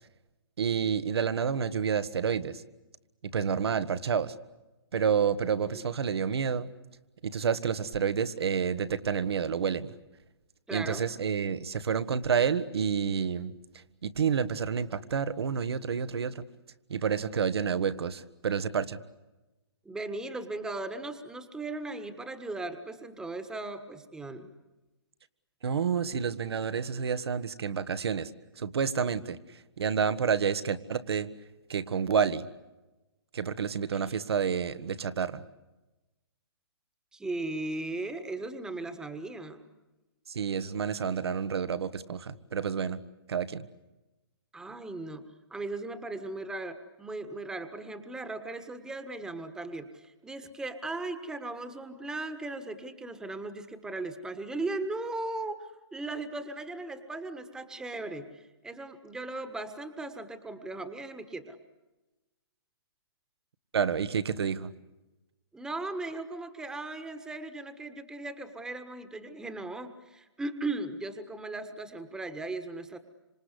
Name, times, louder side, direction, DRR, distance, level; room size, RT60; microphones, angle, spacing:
voice 1, 0.6-2.6 3.3-4.3 4.9-6.7 7.2-9.9 10.7-13.5 14.0-16.4 16.9-19.0 25.6-28.3 28.6-29.4 29.8-31.3 31.7-32.5 33.3-35.4 40.3-43.0 43.3-43.7 63.7-64.7, right 7 dB, 70° right, 14 dB, 1.6 m, -29 dB
voice 2, 10.7-11.1 19.8-24.5 33.9-34.2 37.1-39.6 44.5-45.2 45.5-61.6 65.5-73.0, right 2 dB, 5° right, 9 dB, 1.5 m, -37 dB
26.5 x 26.5 x 8.3 m, 1.1 s
hypercardioid pair, 145°, 14 cm